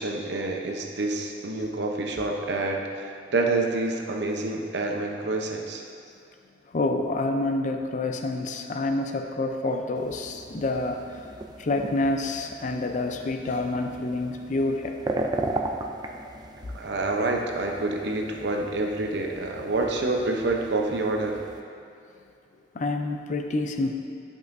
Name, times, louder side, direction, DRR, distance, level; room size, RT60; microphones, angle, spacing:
voice 1, 0.0-5.8 16.7-21.4, right 2 dB, 65° right, 1 dB, 0.7 m, -27 dB
voice 2, 6.7-11.3 11.6-15.2 22.7-23.9, left 2 dB, 45° left, 5 dB, 0.5 m, -28 dB
sound 1, 10.0-21.6, right 2 dB, 25° right, 0.4 m, -37 dB
10.5 x 5.5 x 2.6 m, 2.5 s
head